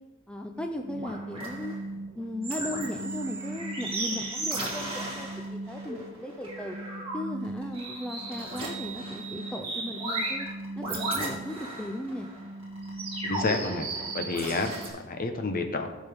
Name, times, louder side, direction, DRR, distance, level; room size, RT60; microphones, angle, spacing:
voice 1, 0.3-1.8 2.2-6.8 7.1-10.5 10.8-12.3, left 1 dB, 5° left, 4 dB, 0.4 m, -37 dB
sound 1, 0.6-14.9, right 2 dB, 25° right, 2.4 m, -35 dB
voice 2, 13.2-13.9 14.1-15.9, left 3 dB, 45° left, 5 dB, 1.0 m, -30 dB
15.5 x 5.3 x 3.5 m, 1.1 s
head